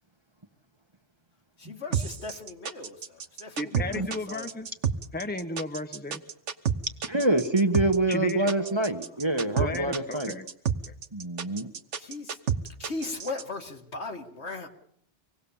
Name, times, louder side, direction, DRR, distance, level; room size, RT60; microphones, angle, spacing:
voice 1, 1.6-4.5 8.5-9.2 11.9-12.4 12.8-14.7, left 3 dB, 70° left, 3 dB, 2.3 m, -38 dB
sound 1, 1.9-13.4, right 7 dB, 85° right, 1.4 m, -30 dB
voice 2, 3.6-4.7 5.1-6.2 8.1-8.5 9.6-10.5 10.8-10.9, left 2 dB, 10° left, 7 dB, 1.1 m, -34 dB
voice 3, 7.0-10.3 11.1-11.7, right 2 dB, 25° right, 6 dB, 1.3 m, -26 dB
25.5 x 18.5 x 7.2 m, 0.69 s
omnidirectional pair, 1.2 m